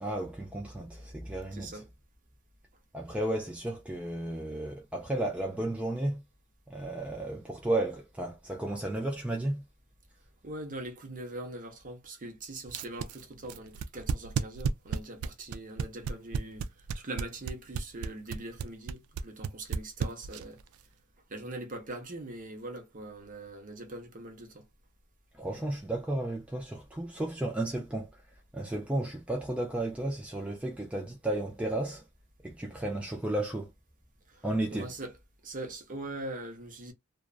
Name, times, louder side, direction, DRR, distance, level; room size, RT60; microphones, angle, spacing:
voice 1, 0.0-1.8 2.9-6.2 6.7-9.6 25.3-28.2 28.5-32.0 32.4-33.7 34.4-34.9, right 1 dB, 5° right, 0.3 m, -33 dB
voice 2, 1.5-1.9 10.4-20.6 21.3-24.7 34.3-34.5 34.7-35.2 35.4-36.9, right 2 dB, 40° right, 0.7 m, -42 dB
sound 1, 12.7-20.6, right 6 dB, 85° right, 0.3 m, -32 dB
2.4 x 2.1 x 2.3 m
head